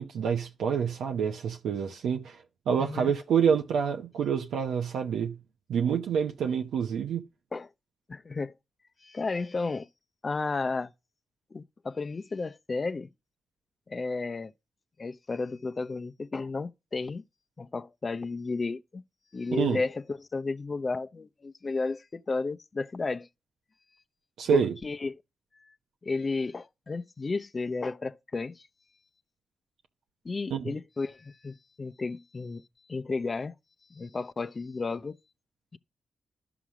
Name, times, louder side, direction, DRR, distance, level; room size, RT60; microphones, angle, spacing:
voice 1, 0.0-5.4 5.7-7.2 19.5-19.8 24.4-24.7 30.5-30.7, right 7 dB, 85° right, 0.9 m, -27 dB
voice 2, 2.8-3.1 7.5-7.7 8.1-8.6 9.0-9.9 10.2-10.9 11.5-13.1 13.9-14.5 15.0-17.2 17.6-19.0 19.3-23.3 24.5-25.2 25.6-25.7 26.0-28.7 30.2-32.6 32.9-33.6 33.9-35.2 35.7-35.8, left 3 dB, 40° left, 0.7 m, -33 dB
11.5 x 6.0 x 6.1 m
supercardioid pair, 55°, 0 cm